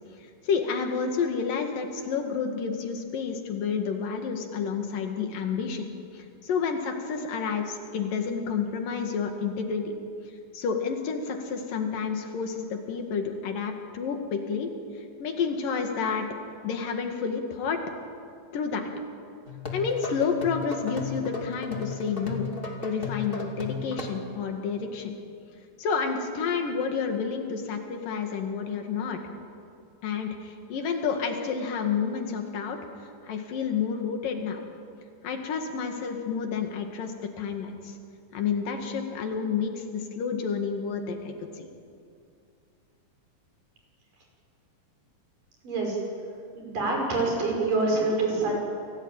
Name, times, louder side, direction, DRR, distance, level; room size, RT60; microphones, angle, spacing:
voice 1, 0.4-10.0 10.5-14.7 15.2-16.3 16.6-17.8 18.5-18.9 19.7-22.5 22.8-25.1 25.8-29.2 30.0-32.8 33.2-34.6 35.2-38.0 38.3-41.7, left 6 dB, 80° left, 4 dB, 3.7 m, -30 dB
sound 1, 19.5-24.1, left 5 dB, 20° left, 2.3 m, -35 dB
voice 2, 45.6-46.0 46.6-48.6, right 3 dB, 75° right, 0 dB, 7.5 m, -26 dB
28.0 x 18.0 x 9.0 m, 2.4 s
omnidirectional pair, 3.9 m